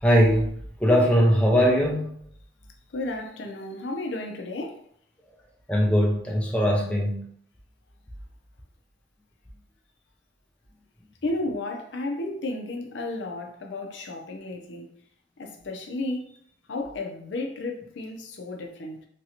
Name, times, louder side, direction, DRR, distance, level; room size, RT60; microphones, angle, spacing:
voice 1, 0.0-2.1 5.7-7.2, equal, 5° left, 0.4 m, -21 dB
voice 2, 2.9-4.8 11.2-14.9 15.4-16.4 16.7-19.1, left 2 dB, 75° left, 0.6 m, -33 dB
3.0 x 2.7 x 2.8 m
head